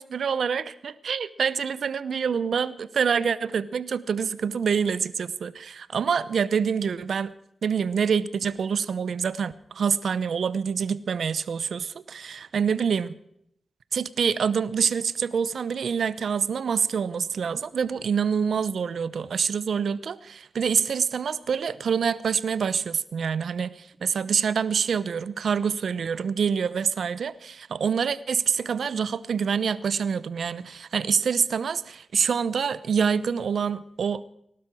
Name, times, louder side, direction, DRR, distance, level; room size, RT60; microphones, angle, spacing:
voice 1, 0.0-7.3 7.6-13.2 13.9-34.3, right 6 dB, 80° right, 16 dB, 0.8 m, -26 dB
18.5 x 12.5 x 6.3 m, 0.74 s
cardioid pair, 50°, 0 cm